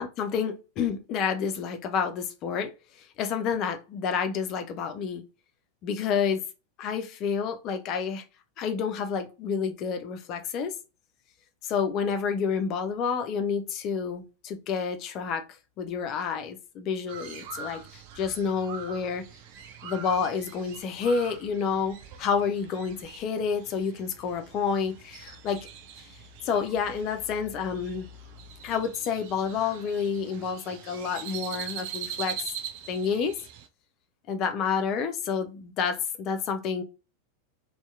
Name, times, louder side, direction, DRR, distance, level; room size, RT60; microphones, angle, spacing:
voice 1, 0.0-2.7 3.2-5.2 5.8-6.4 6.8-8.2 8.6-10.7 11.6-15.4 15.8-19.2 19.8-25.7 26.4-28.1 28.6-32.4 32.9-33.4 34.3-36.8, left 6 dB, 35° left, 0.4 m, -29 dB
Crow, 17.1-33.7, right 8 dB, 45° right, 0.4 m, -43 dB
2.7 x 2.1 x 2.3 m
figure-of-eight pair, 90°, 0 cm